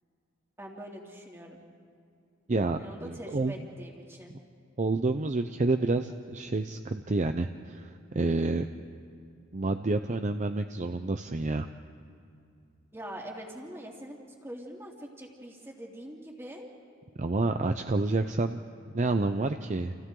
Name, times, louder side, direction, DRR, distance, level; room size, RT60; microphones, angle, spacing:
voice 1, 0.6-1.6 2.8-4.3 12.9-16.7, equal, 15° right, -1 dB, 2.7 m, -43 dB
voice 2, 2.5-3.5 4.8-8.7 9.5-11.7 17.2-19.9, right 2 dB, 35° right, 8 dB, 0.6 m, -29 dB
29.5 x 28.5 x 3.8 m, 2.4 s
head